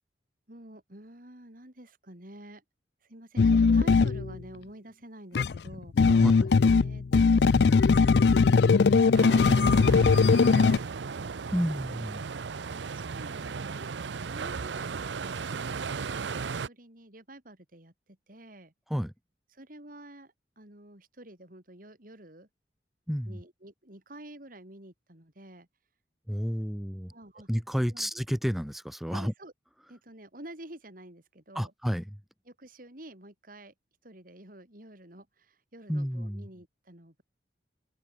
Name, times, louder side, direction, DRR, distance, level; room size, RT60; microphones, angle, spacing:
voice 1, 0.5-2.6 3.1-6.3 6.8-11.4 12.1-13.9 14.2-18.7 19.5-22.5 23.2-25.7 27.1-27.5 27.9-28.1 29.1-29.5 29.9-31.7 32.5-33.7 34.0-37.2, right 1 dB, 50° right, 4.7 m, -49 dB
sound 1, 3.4-4.4 5.3-10.8, left 4 dB, 70° left, 0.4 m, -20 dB
voice 2, 6.0-6.5 11.5-12.2 18.9-19.1 23.1-23.4 26.3-27.1 27.5-29.3 31.5-32.0 35.9-36.5, equal, ahead, 1.4 m, -31 dB
sound 2, 9.1-16.7, right 5 dB, 85° right, 0.6 m, -36 dB
open air
head